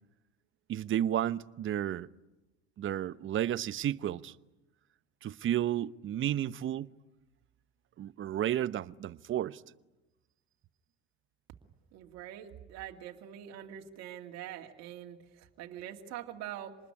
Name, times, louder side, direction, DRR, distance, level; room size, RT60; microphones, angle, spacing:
voice 1, 0.7-2.1 2.8-4.3 5.2-6.9 8.0-9.6, right 11 dB, 45° right, 0.9 m, -32 dB
voice 2, 11.9-16.8, right 11 dB, 65° right, 2.4 m, -44 dB
26.5 x 20.5 x 9.9 m
hypercardioid pair, 75°, 29 cm